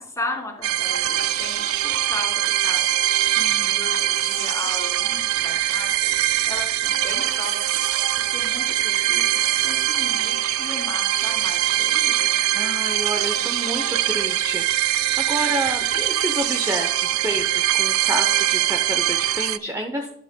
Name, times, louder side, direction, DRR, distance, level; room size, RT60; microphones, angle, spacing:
voice 1, 0.0-2.9 3.2-8.0 8.3-12.3, left 2 dB, 15° left, 1 dB, 2.6 m, -36 dB
sound 1, 0.6-19.6, right 13 dB, 70° right, 0.4 m, -22 dB
voice 2, 3.4-3.8 12.5-20.1, right 1 dB, 15° right, 4 dB, 0.7 m, -29 dB
11.5 x 9.8 x 2.2 m, 0.76 s
head